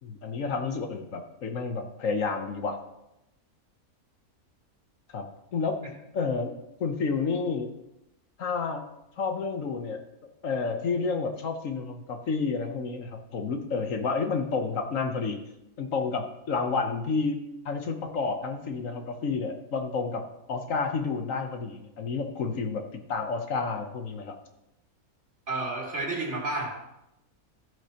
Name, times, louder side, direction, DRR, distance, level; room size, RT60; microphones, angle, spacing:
voice 1, 0.0-2.8 5.1-5.8 6.1-6.5 6.8-7.7 8.4-8.8 9.2-10.0 10.4-15.4 15.8-20.2 20.5-24.4, left 4 dB, 65° left, 5 dB, 1.2 m, -30 dB
voice 2, 25.5-26.7, right 2 dB, 50° right, -2 dB, 2.6 m, -30 dB
14.0 x 8.2 x 2.9 m, 0.87 s
omnidirectional pair, 1.5 m